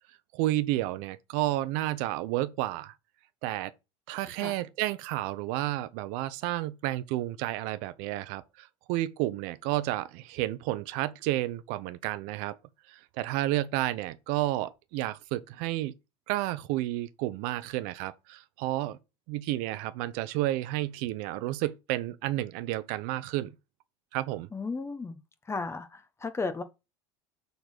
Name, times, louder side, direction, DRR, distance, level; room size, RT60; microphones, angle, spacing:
voice 1, 0.3-2.9 3.4-3.7 4.1-12.6 12.9-15.9 16.3-19.0 19.3-23.5 24.1-24.5, right 16 dB, 65° right, 0.8 m, -31 dB
voice 2, 24.5-25.2 25.5-26.6, left 4 dB, 15° left, 1.3 m, -34 dB
6.8 x 4.0 x 6.1 m
supercardioid pair, 95°, 15 cm